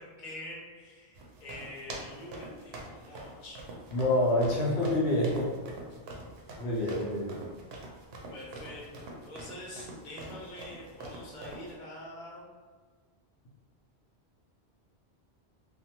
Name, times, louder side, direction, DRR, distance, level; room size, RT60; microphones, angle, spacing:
voice 1, 0.2-3.6 6.8-7.0 8.3-12.4, left 1 dB, 50° left, -4 dB, 0.8 m, -45 dB
sound 1, 1.1-11.7, right 2 dB, 75° right, 0.8 m, -45 dB
voice 2, 3.9-5.6 6.6-7.4, left 1 dB, 80° left, -3 dB, 0.9 m, -27 dB
2.5 x 2.3 x 2.8 m, 1.5 s
omnidirectional pair, 1.1 m